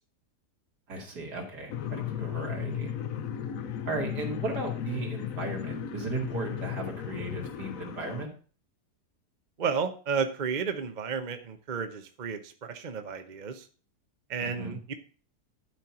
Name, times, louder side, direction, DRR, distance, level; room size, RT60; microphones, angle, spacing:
voice 1, 0.9-2.9 3.8-8.3 14.4-14.8, right 2 dB, 90° right, 0 dB, 3.0 m, -36 dB
sound 1, 1.7-8.2, left 9 dB, 65° left, 1.1 m, -35 dB
voice 2, 9.6-13.7 14.3-14.9, right 6 dB, 35° right, 8 dB, 0.8 m, -32 dB
11.5 x 4.6 x 5.8 m, 0.40 s
omnidirectional pair, 1.7 m